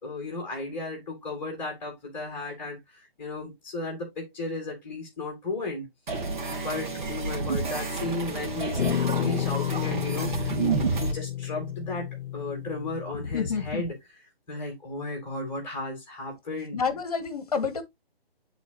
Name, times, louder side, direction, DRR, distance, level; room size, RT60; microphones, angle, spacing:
voice 1, 0.0-2.8 3.2-5.9 6.5-12.1 12.3-13.9 14.5-16.8, left 2 dB, 5° left, 2.0 m, -34 dB
sound 1, 6.1-11.1, right 4 dB, 50° right, 2.4 m, -30 dB
sound 2, 8.8-13.8, left 10 dB, 65° left, 0.9 m, -31 dB
voice 2, 13.1-13.8 16.7-17.8, left 5 dB, 40° left, 1.3 m, -29 dB
10.5 x 4.0 x 3.0 m
hypercardioid pair, 175°, 31 cm